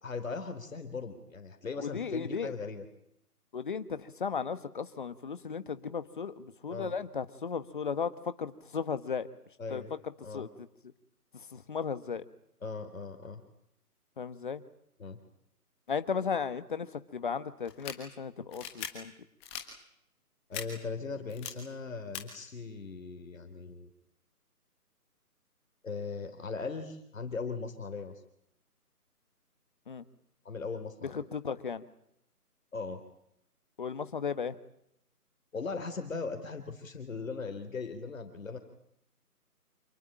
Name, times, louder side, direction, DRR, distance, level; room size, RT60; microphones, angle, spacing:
voice 1, 0.0-2.8 6.7-6.9 9.6-9.9 10.2-10.5 12.6-13.4 15.0-15.2 20.5-23.9 25.8-28.2 30.4-31.2 32.7-33.0 35.5-38.6, left 4 dB, 55° left, 7 dB, 3.4 m, -39 dB
voice 2, 1.8-2.5 3.5-9.3 9.7-9.8 10.3-10.5 11.3-12.2 14.2-14.6 15.9-19.1 29.9-30.0 31.0-31.8 33.8-34.6, left 6 dB, 30° left, 12 dB, 1.3 m, -35 dB
sound 1, 17.7-17.9 18.5-18.9 19.4-19.6 20.5-20.6 21.3-21.5 22.1-22.2, left 8 dB, 5° left, 1.5 m, -39 dB
27.5 x 20.0 x 8.8 m, 0.76 s
figure-of-eight pair, 165°, 47 cm